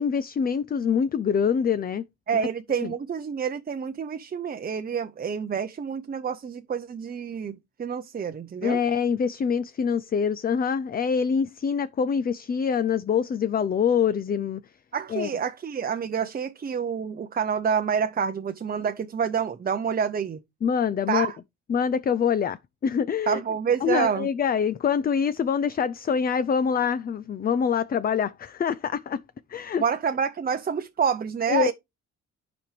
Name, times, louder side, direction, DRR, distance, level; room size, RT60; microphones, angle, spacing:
voice 1, 0.0-2.0 2.8-2.9 8.6-14.6 15.1-15.3 20.6-21.3 21.7-23.4 23.8-29.2 29.5-29.8 31.5-31.7, left 7 dB, 30° left, 0.5 m, -25 dB
voice 2, 2.3-8.8 14.9-20.4 21.1-21.4 23.3-24.3 29.8-31.7, right 7 dB, 30° right, 0.7 m, -28 dB
13.0 x 5.2 x 3.2 m
cardioid pair, 90°, 30 cm